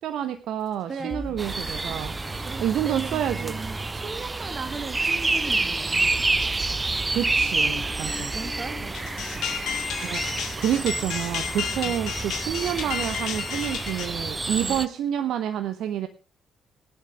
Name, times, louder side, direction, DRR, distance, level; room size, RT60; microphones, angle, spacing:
voice 1, 0.0-2.2 2.6-3.6 7.1-8.4 10.0-16.1, right 10 dB, 60° right, 9 dB, 0.9 m, -28 dB
sound 1, 0.6-11.1, left 4 dB, 40° left, 2.5 m, -45 dB
voice 2, 0.9-1.3 2.4-6.3 8.3-10.0 11.7-12.0 14.5-14.8, right 5 dB, 40° right, 9 dB, 2.3 m, -38 dB
sound 2, 1.4-14.9, right 3 dB, 25° right, 0.9 m, -28 dB
sound 3, 8.9-14.1, left 8 dB, 60° left, 2.1 m, -32 dB
18.5 x 11.0 x 3.4 m, 0.34 s
figure-of-eight pair, 40°, 0 cm